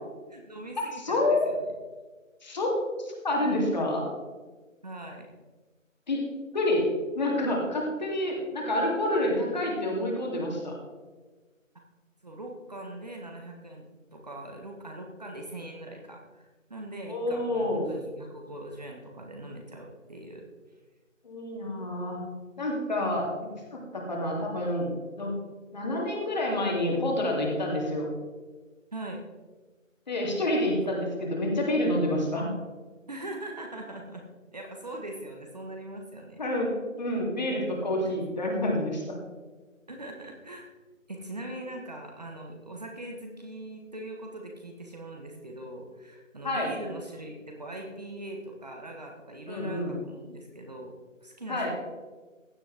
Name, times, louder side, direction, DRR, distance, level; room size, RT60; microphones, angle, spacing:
voice 1, 0.3-1.7 4.8-5.3 12.2-13.9 14.1-20.4 28.9-29.2 33.1-34.3 34.5-36.4 38.0-38.1 39.9-40.7 41.1-51.0 51.2-51.7, right 1 dB, 30° right, 1 dB, 1.3 m, -41 dB
voice 2, 1.0-1.5 2.4-2.7 3.0-4.0 6.1-6.2 6.5-10.7 17.1-17.9 21.2-22.2 22.6-24.9 25.2-25.4 25.7-28.1 30.1-32.5 36.4-36.7 37.0-39.2 46.4-46.7 49.5-49.9 51.5-51.7, left 1 dB, 35° left, -1 dB, 2.8 m, -28 dB
16.0 x 10.5 x 3.5 m, 1.3 s
figure-of-eight pair, 165°, 40 cm